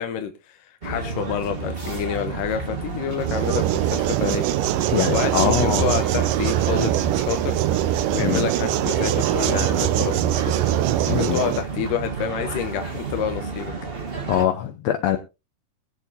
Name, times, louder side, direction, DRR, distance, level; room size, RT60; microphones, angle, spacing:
voice 1, 0.0-4.5 5.1-7.6 8.1-10.4 11.1-13.7, left 9 dB, 90° left, 7 dB, 2.6 m, -28 dB
sound 1, 0.8-14.4, right 4 dB, 30° right, 1.1 m, -31 dB
sound 2, 3.2-11.6, right 13 dB, 85° right, 2.3 m, -22 dB
voice 2, 4.9-5.9 8.2-8.4 11.1-11.4 14.3-15.2, left 10 dB, 70° left, 6 dB, 1.8 m, -23 dB
21.5 x 7.6 x 2.7 m, 0.27 s
omnidirectional pair, 3.7 m